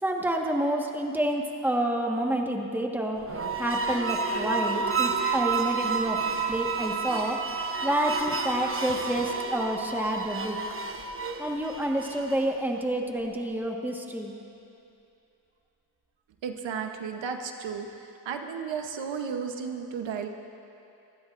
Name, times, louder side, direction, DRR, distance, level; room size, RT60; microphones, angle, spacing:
voice 1, 0.0-3.2 3.6-6.2 6.5-7.4 7.8-10.6 11.4-14.3, right 1 dB, 5° right, 1 dB, 1.5 m, -28 dB
sound 1, 3.2-12.6, right 5 dB, 30° right, 1.0 m, -30 dB
voice 2, 16.4-17.9 18.2-20.3, right 6 dB, 80° right, 5 dB, 1.1 m, -33 dB
24.0 x 16.0 x 2.6 m, 2.7 s
cardioid pair, 80°, 44 cm